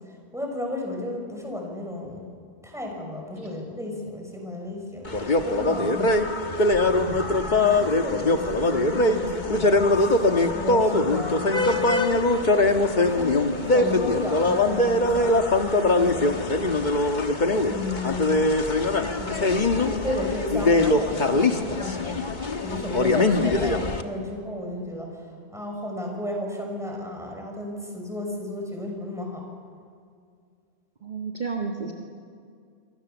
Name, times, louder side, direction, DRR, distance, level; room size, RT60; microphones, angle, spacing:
voice 1, 0.3-2.2 2.6-6.1 6.9-12.1 12.8-16.4 17.7-18.5 19.2-22.2 22.6-25.3 25.5-29.4, left 1 dB, 5° right, 0 dB, 5.8 m, -33 dB
sound 1, 5.1-24.0, left 2 dB, 45° left, 1.5 m, -22 dB
voice 2, 31.0-31.9, right 4 dB, 45° right, 0 dB, 1.9 m, -31 dB
28.0 x 24.0 x 7.1 m, 2.3 s
omnidirectional pair, 1.1 m